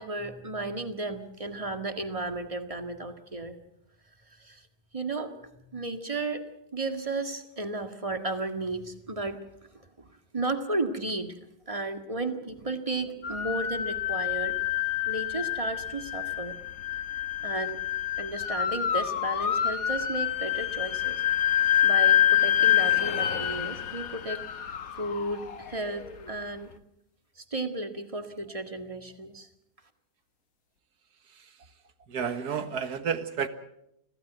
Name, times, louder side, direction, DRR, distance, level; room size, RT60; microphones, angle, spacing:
voice 1, 0.0-3.6 4.3-4.7 4.9-9.4 9.7-10.1 10.3-11.4 11.7-14.6 15.1-16.6 17.4-17.8 18.2-21.2 21.8-24.5 25.0-26.7 27.4-29.5, right 2 dB, 20° right, 7 dB, 1.8 m, -34 dB
sound 1, 13.2-26.3, left 11 dB, 60° left, 1.5 m, -27 dB
voice 2, 32.1-33.5, right 7 dB, 70° right, 10 dB, 2.0 m, -30 dB
25.5 x 16.5 x 8.0 m, 0.80 s
omnidirectional pair, 1.8 m